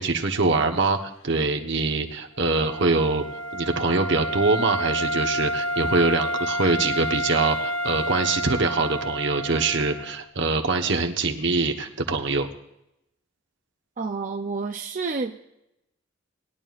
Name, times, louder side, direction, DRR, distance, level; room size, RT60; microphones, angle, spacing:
voice 1, 0.0-3.2 3.5-12.5, right 3 dB, 65° right, 4 dB, 1.2 m, -24 dB
Wind instrument woodwind instrument, 2.4-10.2, equal, 90° left, 1.3 m, -29 dB
voice 2, 14.0-15.4, right 4 dB, 40° right, 4 dB, 0.5 m, -29 dB
20.0 x 11.0 x 2.5 m, 0.85 s
head